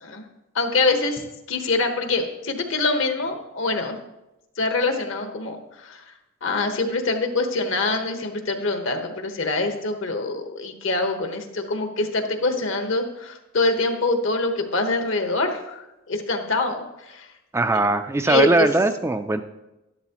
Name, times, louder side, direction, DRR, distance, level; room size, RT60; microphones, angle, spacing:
voice 1, 0.5-1.2 1.5-4.0 4.6-6.0 6.4-17.3 18.2-18.7, left 3 dB, 65° left, 5 dB, 1.1 m, -25 dB
voice 2, 17.5-19.4, right 2 dB, 15° right, 8 dB, 0.3 m, -20 dB
11.5 x 11.5 x 2.9 m, 0.98 s
head